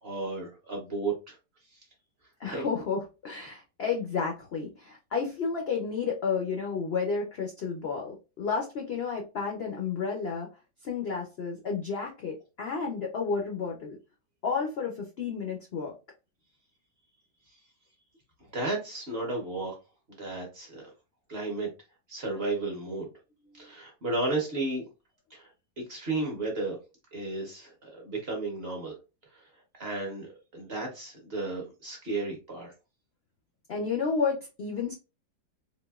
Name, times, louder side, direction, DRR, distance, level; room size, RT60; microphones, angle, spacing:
voice 1, 0.0-1.4 1.7-1.8 2.4-2.6 17.5-17.6 18.4-19.8 20.1-20.8 21.3-21.7 22.1-23.1 23.5-24.8 25.3-25.5 25.8-26.8 27.1-29.0 29.3-32.7, right 2 dB, 45° right, -1 dB, 0.9 m, -33 dB
voice 2, 2.4-10.5 10.8-14.0 14.4-15.9 23.5-23.7 33.7-34.9, left 5 dB, 65° left, 1 dB, 0.6 m, -31 dB
4.0 x 2.4 x 2.3 m, 0.29 s
omnidirectional pair, 1.8 m